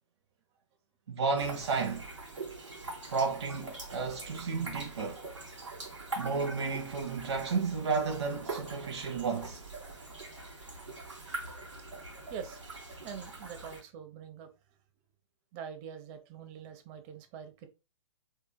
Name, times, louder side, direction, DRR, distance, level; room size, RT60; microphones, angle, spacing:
voice 1, 1.1-2.1 3.1-5.2 6.2-9.6, right 4 dB, 65° right, 1.1 m, -32 dB
sound 1, 1.4-13.8, right 3 dB, 80° right, 2.7 m, -43 dB
voice 2, 12.3-12.6 13.0-14.5 15.5-17.7, right 7 dB, 30° right, 0.9 m, -44 dB
4.6 x 4.5 x 2.2 m
figure-of-eight pair, 120°, 15 cm